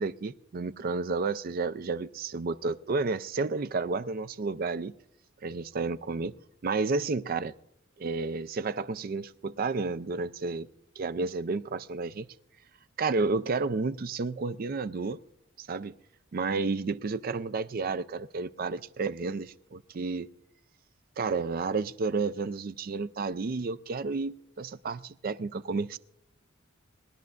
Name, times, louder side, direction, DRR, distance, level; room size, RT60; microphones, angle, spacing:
voice 1, 0.0-4.9 5.4-6.4 6.6-7.5 8.0-10.7 11.0-12.3 13.0-15.2 15.6-15.9 16.3-20.3 21.2-26.0, right 4 dB, 45° right, 0.4 m, -31 dB
21.0 x 11.5 x 2.4 m
head